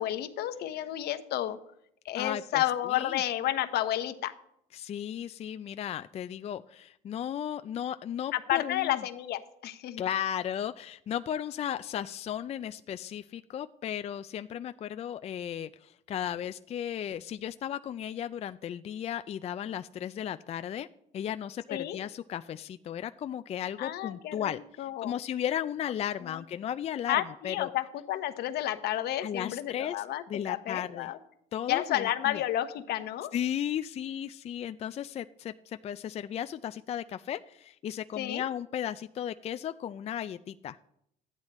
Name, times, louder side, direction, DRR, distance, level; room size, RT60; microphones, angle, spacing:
voice 1, 0.0-1.6 2.0-4.3 8.3-10.1 21.7-22.0 23.8-25.1 26.2-26.4 27.1-31.2 31.7-33.3 38.2-38.4, left 13 dB, 75° left, 10 dB, 1.0 m, -31 dB
voice 2, 2.1-3.2 4.7-9.0 10.0-20.9 21.1-27.2 27.4-27.7 29.2-30.0 30.3-31.1 31.5-32.4 33.3-40.8, left 10 dB, 40° left, 11 dB, 0.4 m, -35 dB
13.5 x 9.7 x 4.2 m, 0.75 s
cardioid pair, 110°, 17 cm